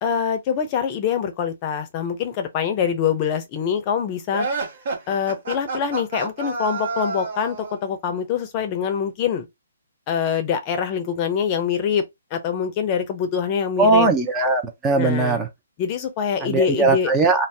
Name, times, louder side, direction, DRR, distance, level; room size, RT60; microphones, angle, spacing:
voice 1, 0.0-4.5 5.1-9.5 10.1-12.0 12.3-14.1 15.0-15.4 15.8-17.1, left 7 dB, 30° left, 0.6 m, -24 dB
sound 1, 4.3-7.9, right 3 dB, 55° right, 1.3 m, -29 dB
voice 2, 13.8-15.5 16.4-17.5, right 3 dB, 15° right, 0.6 m, -19 dB
2.6 x 2.1 x 3.3 m
hypercardioid pair, 140°, 0 cm